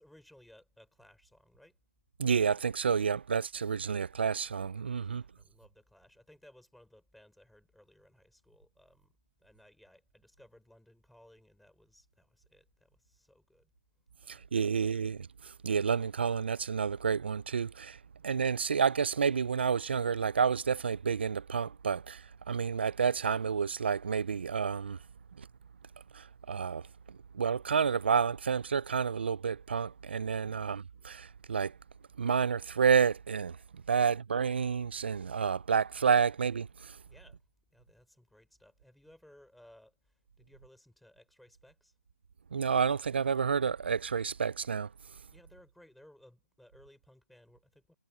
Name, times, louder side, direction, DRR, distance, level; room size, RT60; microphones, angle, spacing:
voice 1, 0.0-1.8 5.0-13.7 14.2-14.8 30.4-30.6 33.8-34.2 37.0-37.4 37.7-42.0 45.3-47.9, left 1 dB, ahead, 5.4 m, -61 dB
voice 2, 2.2-5.2 14.3-18.0 18.2-25.0 25.4-25.5 26.1-31.7 32.2-37.0 42.5-44.9, right 6 dB, 50° right, 0.5 m, -30 dB
hypercardioid pair, 175°, 8 cm